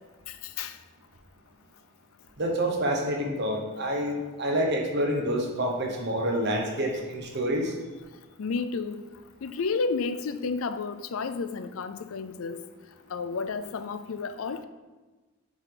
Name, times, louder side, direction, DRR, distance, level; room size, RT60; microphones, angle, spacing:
voice 1, 2.4-7.7, equal, 50° right, 1 dB, 1.0 m, -28 dB
voice 2, 8.4-9.1 9.4-12.6 13.1-14.6, left 4 dB, 70° left, 11 dB, 0.4 m, -31 dB
7.2 x 3.8 x 5.0 m, 1.2 s
head